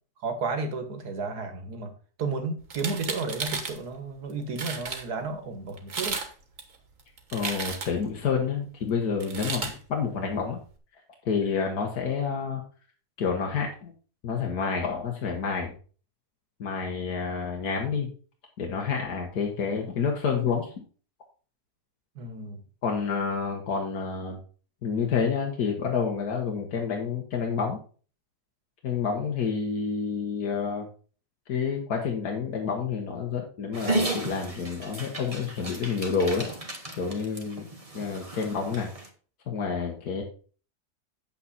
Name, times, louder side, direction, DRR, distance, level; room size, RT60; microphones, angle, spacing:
voice 1, 0.2-1.9 2.2-6.2 22.2-22.6, right 4 dB, 75° right, 7 dB, 1.9 m, -32 dB
sound 1, 2.6-3.8 4.3-4.4 4.6-5.0 5.8-6.3 6.6-8.1 9.2-9.7, right 5 dB, 55° right, 1.7 m, -33 dB
voice 2, 7.3-10.6 11.2-12.6 13.2-13.9 14.2-15.7 16.6-18.1 18.6-20.7 22.8-24.4 24.8-27.8 28.8-30.9 31.5-36.5 37.0-37.7 37.9-38.9 39.5-40.2, left 5 dB, 70° left, 0 dB, 1.8 m, -29 dB
Dog, 33.7-39.1, right 2 dB, 25° right, 1.2 m, -34 dB
9.0 x 7.1 x 4.2 m, 0.39 s
omnidirectional pair, 1.7 m